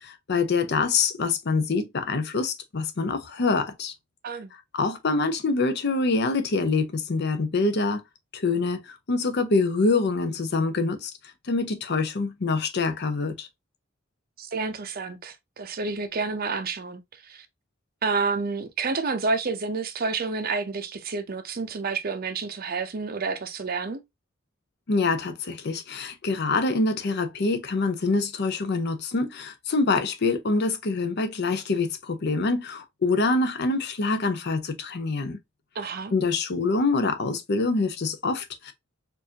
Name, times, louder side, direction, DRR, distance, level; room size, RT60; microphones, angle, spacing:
voice 1, 0.0-3.9 4.7-8.0 8.3-11.1 11.4-13.5 24.9-35.4 36.1-38.7, left 3 dB, 55° left, 0.6 m, -25 dB
voice 2, 14.4-17.5 18.0-24.0 35.8-36.1, right 4 dB, 45° right, 0.6 m, -29 dB
4.6 x 2.6 x 2.7 m
head